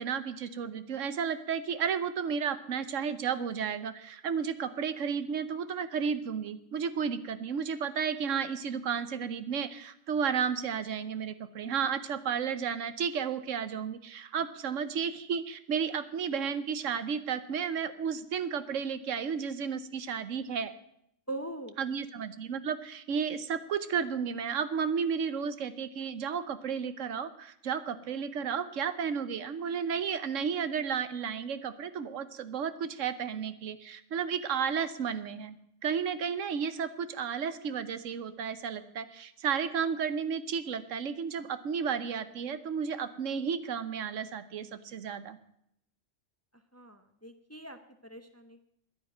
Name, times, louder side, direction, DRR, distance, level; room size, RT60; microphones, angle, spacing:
voice 1, 0.0-20.7 21.8-35.6 35.8-45.4, right 7 dB, 80° right, 13 dB, 1.2 m, -33 dB
voice 2, 21.3-21.8 46.5-48.6, right 2 dB, 15° left, 8 dB, 0.7 m, -42 dB
10.5 x 9.8 x 9.2 m, 0.74 s
omnidirectional pair, 1.3 m